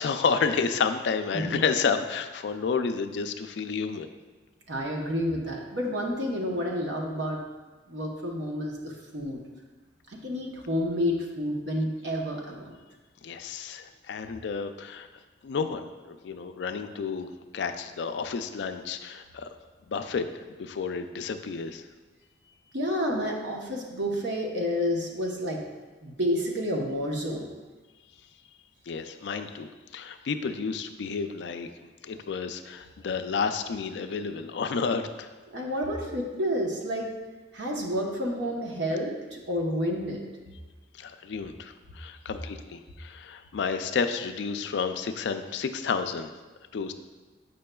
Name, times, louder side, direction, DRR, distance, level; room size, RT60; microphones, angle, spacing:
voice 1, 0.0-4.1 13.2-15.1 15.4-17.3 17.5-19.5 19.9-20.3 20.6-21.8 28.9-31.7 32.0-35.3 41.0-46.3 46.7-46.9, left 5 dB, 70° left, 9 dB, 0.4 m, -30 dB
voice 2, 4.7-7.4 7.9-9.4 10.1-12.7 22.7-25.6 26.0-27.5 35.5-37.1 37.5-40.2, equal, 75° right, 0 dB, 0.9 m, -30 dB
7.6 x 5.4 x 2.3 m, 1.3 s
head